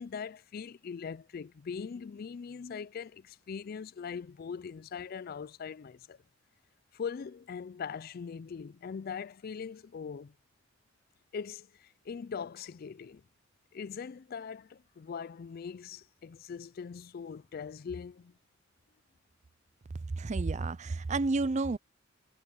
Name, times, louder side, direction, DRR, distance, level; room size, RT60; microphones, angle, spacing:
voice 1, 0.0-6.2 6.9-10.3 11.3-13.2 13.7-18.3, left 6 dB, 50° left, 0.4 m, -41 dB
voice 2, 20.1-21.8, right 3 dB, 35° right, 0.5 m, -30 dB
head